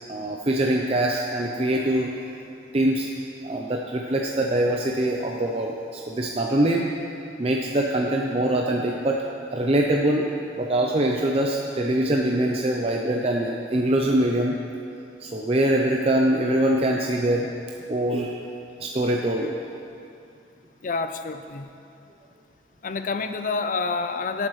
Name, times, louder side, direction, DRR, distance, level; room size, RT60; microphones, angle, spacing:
voice 1, 0.1-2.1 2.7-3.1 3.4-6.9 7.4-9.2 9.5-10.3 10.6-14.6 15.2-17.5 17.9-18.4 18.8-19.5, right 1 dB, 35° right, 0 dB, 0.6 m, -23 dB
voice 2, 20.8-21.7 22.8-24.5, left 4 dB, 45° left, 8 dB, 0.4 m, -28 dB
17.5 x 8.6 x 3.2 m, 2.5 s
head